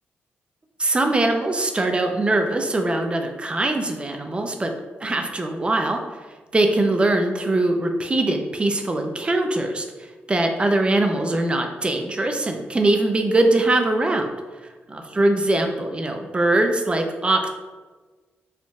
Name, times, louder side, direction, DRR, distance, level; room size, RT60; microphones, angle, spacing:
voice 1, 0.8-4.7 5.0-6.0 6.5-9.9 10.3-14.3 14.6-17.5, right 2 dB, 25° right, 4 dB, 0.5 m, -22 dB
4.9 x 3.7 x 2.4 m, 1.3 s
cardioid pair, 85°, 4 cm